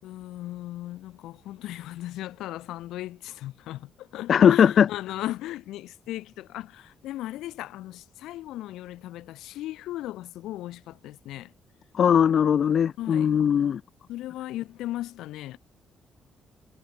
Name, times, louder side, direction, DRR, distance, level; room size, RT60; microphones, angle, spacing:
voice 1, 0.0-11.5 13.0-13.3 14.1-15.6, left 15 dB, 90° left, 4.7 m, -37 dB
voice 2, 4.3-4.9 11.9-13.8, left 8 dB, 55° left, 0.5 m, -19 dB
cardioid pair, 90°, 0 cm